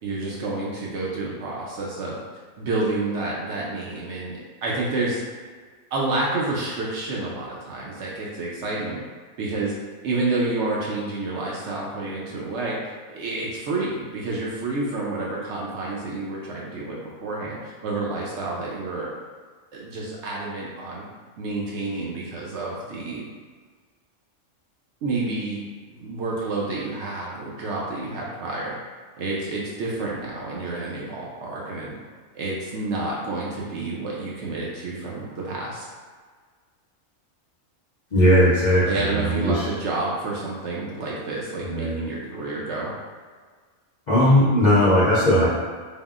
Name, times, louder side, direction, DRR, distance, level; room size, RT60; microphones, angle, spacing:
voice 1, 0.0-2.2 2.6-5.2 5.9-9.0 9.4-9.7 10.0-12.8 13.1-19.1 19.7-21.0 21.4-23.3 25.0-28.8 29.2-31.9 32.3-35.9 38.8-42.9, right 2 dB, 65° right, -4 dB, 0.8 m, -29 dB
voice 2, 38.1-39.7 41.7-42.0 44.1-45.5, equal, 50° left, -10 dB, 0.5 m, -18 dB
3.5 x 2.1 x 2.3 m, 1.5 s
omnidirectional pair, 1.4 m